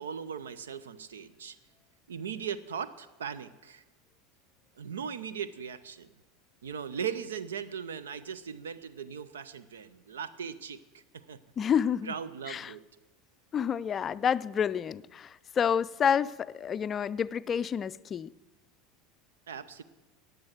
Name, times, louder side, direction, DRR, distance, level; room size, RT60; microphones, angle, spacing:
voice 1, 0.0-1.6 2.1-3.8 4.8-6.1 6.6-11.4 12.0-12.8 19.5-19.8, right 7 dB, 70° right, 16 dB, 0.5 m, -38 dB
voice 2, 11.6-12.1 12.5-12.7 13.5-18.3, left 8 dB, 30° left, 17 dB, 0.4 m, -29 dB
15.0 x 9.3 x 7.5 m, 1.1 s
figure-of-eight pair, 75°, 0 cm